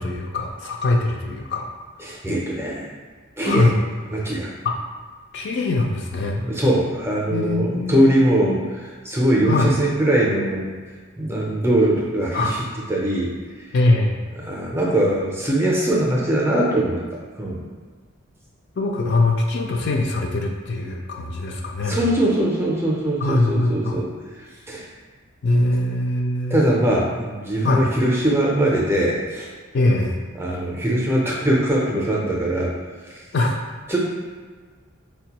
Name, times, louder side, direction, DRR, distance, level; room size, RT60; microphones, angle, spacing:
voice 1, 0.0-1.6 3.4-3.7 5.3-6.4 7.3-8.0 9.5-9.7 12.3-12.6 13.7-14.2 18.8-22.0 23.2-24.0 25.4-26.6 27.6-27.8 29.7-30.1 33.3-33.6, left 2 dB, 50° left, 1 dB, 0.4 m, -22 dB
voice 2, 2.0-2.9 3.4-3.7 4.1-4.5 6.4-10.7 11.2-13.3 13.6-13.7 14.4-17.6 21.8-24.1 24.4-24.9 26.5-29.5 30.3-32.7 33.1-33.2 33.9-34.0, right 1 dB, 10° right, -4 dB, 0.4 m, -21 dB
4.6 x 2.2 x 2.8 m, 1.5 s
head